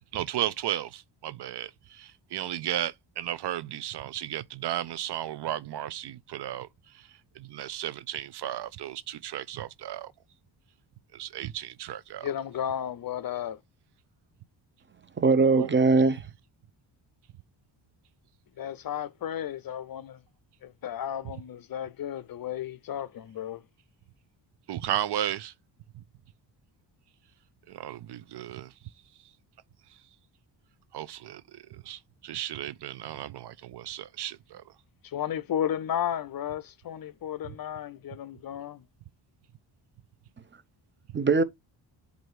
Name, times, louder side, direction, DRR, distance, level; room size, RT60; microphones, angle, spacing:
voice 1, 0.1-6.7 6.9-7.1 7.4-10.1 11.1-12.3 15.6-15.7 24.7-25.5 25.9-26.0 27.7-28.7 30.9-34.7, right 12 dB, 60° right, 0.5 m, -34 dB
voice 2, 12.2-13.6 18.6-20.2 20.6-23.6 35.0-38.8, left 10 dB, 50° left, 0.5 m, -33 dB
voice 3, 15.2-16.2 41.1-41.4, right 4 dB, 25° right, 0.7 m, -21 dB
7.8 x 2.7 x 4.6 m
cardioid pair, 95°, 47 cm